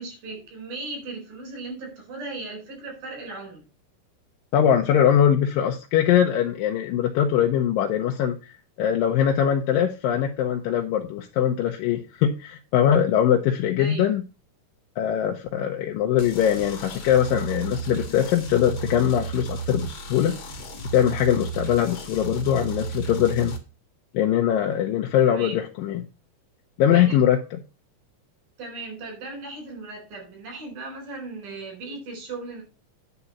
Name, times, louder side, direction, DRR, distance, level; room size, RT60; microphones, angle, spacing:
voice 1, 0.0-3.6 13.8-14.1 25.2-25.6 26.9-27.2 28.6-32.6, right 3 dB, 80° right, 0 dB, 6.1 m, -37 dB
voice 2, 4.5-8.4 8.8-14.2 15.0-20.3 20.9-23.6 24.1-26.0 26.8-27.4, left 10 dB, 90° left, 2 dB, 2.5 m, -22 dB
sound 1, 16.2-23.6, right 5 dB, 50° left, 1.8 m, -34 dB
9.7 x 4.0 x 7.1 m, 0.32 s
omnidirectional pair, 3.9 m